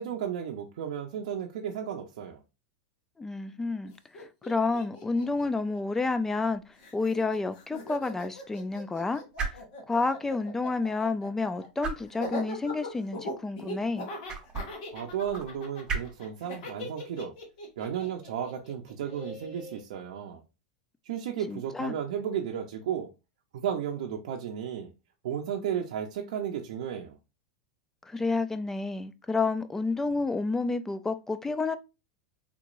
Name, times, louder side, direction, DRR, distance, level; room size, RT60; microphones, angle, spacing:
voice 1, 0.0-2.4 14.9-17.3 17.8-20.4 21.1-23.1 23.5-24.9 25.2-27.1, right 9 dB, 75° right, 0.6 m, -34 dB
voice 2, 3.2-6.6 6.9-9.2 9.9-14.1 21.5-21.9 28.1-31.8, left 3 dB, 10° left, 0.3 m, -30 dB
Laughter, 3.8-6.5 6.8-19.8, left 1 dB, 70° left, 1.5 m, -41 dB
sound 1, 6.3-19.9, right 5 dB, 20° right, 0.8 m, -42 dB
3.5 x 3.0 x 2.5 m
supercardioid pair, 135°, 4 cm